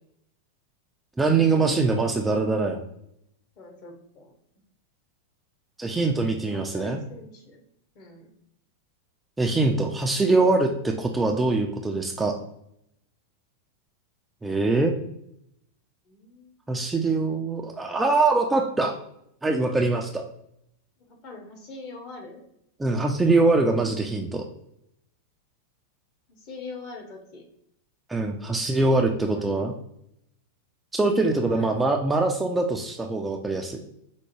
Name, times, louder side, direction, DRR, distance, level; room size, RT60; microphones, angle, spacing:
voice 1, 1.2-2.8 5.8-7.0 9.4-12.3 14.4-14.9 16.7-18.9 19.4-20.2 22.8-24.4 28.1-29.7 30.9-33.8, right 3 dB, 10° right, 2 dB, 0.3 m, -23 dB
voice 2, 3.6-4.3 6.5-7.6 7.9-8.3 16.1-16.5 21.1-22.4 26.3-27.4 28.6-29.4 31.3-31.7, left 3 dB, 40° left, 1 dB, 0.9 m, -42 dB
4.5 x 2.1 x 3.0 m, 0.77 s
figure-of-eight pair, 90°, 0 cm